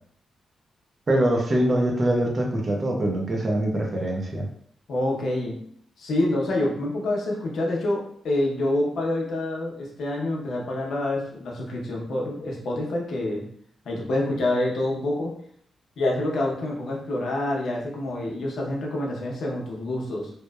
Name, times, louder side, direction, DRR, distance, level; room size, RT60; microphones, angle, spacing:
voice 1, 1.1-4.4, right 1 dB, 35° right, 0 dB, 0.5 m, -23 dB
voice 2, 4.9-5.6 6.0-13.4 13.8-15.3 16.0-20.3, left 1 dB, 70° left, -2 dB, 0.6 m, -27 dB
2.9 x 2.1 x 2.2 m, 0.64 s
cardioid pair, 115°, 0 cm